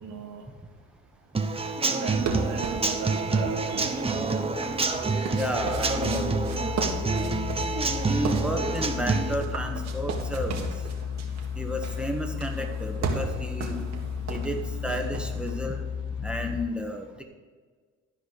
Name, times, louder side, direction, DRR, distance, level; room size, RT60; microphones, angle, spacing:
voice 1, 0.0-0.4 2.0-4.4, right 6 dB, 80° right, -2 dB, 1.4 m, -37 dB
Human voice / Acoustic guitar / Drum, 1.3-9.3, right 3 dB, 20° right, 1.0 m, -27 dB
sound 1, 2.1-15.6, right 5 dB, 65° right, 1.8 m, -36 dB
voice 2, 5.2-6.3 8.1-10.7 11.6-13.8 14.3-15.9 16.2-17.0, equal, 5° right, 3 dB, 1.6 m, -32 dB
sound 2, 5.6-16.7, left 7 dB, 75° left, 0.6 m, -34 dB
13.0 x 5.1 x 6.6 m, 1.5 s
cardioid pair, 90°, 30 cm